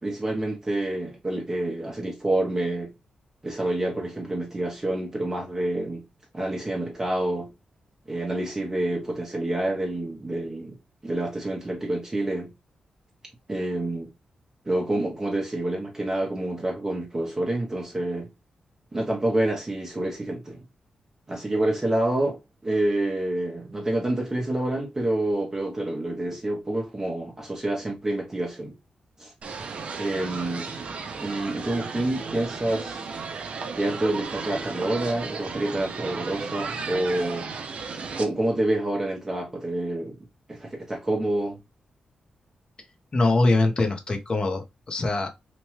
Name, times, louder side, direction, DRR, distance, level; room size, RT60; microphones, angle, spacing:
voice 1, 0.0-2.9 3.4-6.0 6.3-7.5 8.1-10.8 11.0-12.5 13.5-14.1 14.7-18.3 18.9-20.6 21.3-28.7 29.2-29.3 30.0-30.7 31.2-33.1 33.7-37.5 38.0-40.2 40.5-41.6, right 1 dB, 25° right, 0.7 m, -28 dB
sound 1, 29.4-38.2, right 4 dB, 60° right, 0.5 m, -34 dB
voice 2, 43.1-45.3, left 2 dB, 40° left, 0.7 m, -23 dB
2.9 x 2.2 x 3.0 m
cardioid pair, 80°, 2 cm